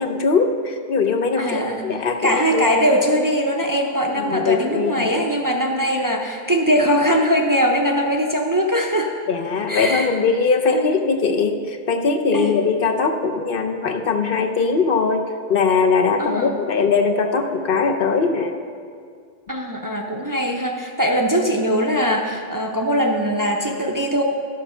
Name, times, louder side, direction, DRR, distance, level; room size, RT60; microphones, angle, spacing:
voice 1, 0.0-2.8 4.2-5.2 9.3-18.6, left 4 dB, 65° left, 6 dB, 0.8 m, -21 dB
voice 2, 1.4-1.9 2.2-9.1 9.7-10.1 10.7-10.9 12.3-12.5 16.2-16.6 19.5-24.2, equal, 25° right, 1 dB, 0.6 m, -21 dB
11.5 x 6.6 x 5.5 m, 2.2 s
omnidirectional pair, 1.0 m